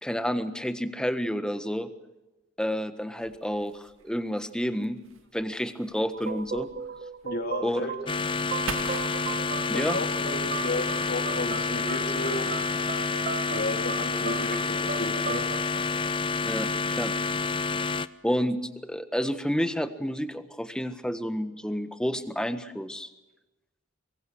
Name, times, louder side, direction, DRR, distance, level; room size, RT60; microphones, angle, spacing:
voice 1, 0.0-1.9 2.6-5.0 5.3-6.7 7.6-7.8 9.7-10.0 16.4-17.1 18.2-23.1, equal, 5° left, 10 dB, 1.5 m, -30 dB
sound 1, 3.2-11.5, right 5 dB, 80° right, 2.3 m, -44 dB
sound 2, 6.1-16.8, right 5 dB, 45° right, 1.1 m, -37 dB
voice 2, 7.2-8.0 9.7-12.5 13.5-15.4, left 1 dB, 55° left, 5 dB, 3.4 m, -33 dB
sound 3, 8.1-18.1, left 4 dB, 25° left, 0.7 m, -28 dB
25.0 x 22.5 x 6.4 m, 1.1 s
head